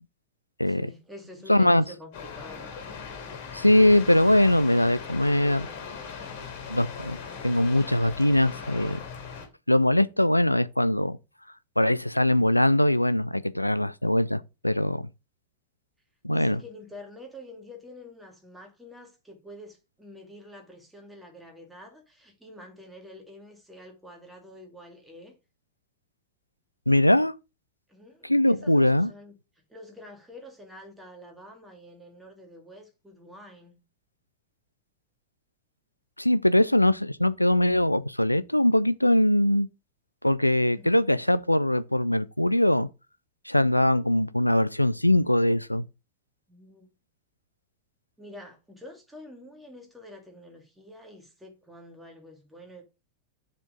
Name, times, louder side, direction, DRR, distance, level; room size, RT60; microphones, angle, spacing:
voice 1, 0.7-2.7 16.3-25.3 27.9-29.3 29.7-33.8 40.7-41.0 46.5-46.9 48.2-52.8, left 1 dB, 5° right, 2.3 m, -47 dB
voice 2, 1.5-1.8 3.5-5.7 6.7-9.0 9.7-11.2 11.8-15.0 16.2-16.6 26.9-27.3 28.2-29.1 36.2-39.7 40.2-42.9 43.5-45.9, left 1 dB, 85° left, 0.3 m, -22 dB
sound 1, 2.1-9.5, left 6 dB, 50° left, 2.4 m, -39 dB
7.2 x 4.4 x 4.8 m
figure-of-eight pair, 90°, 0 cm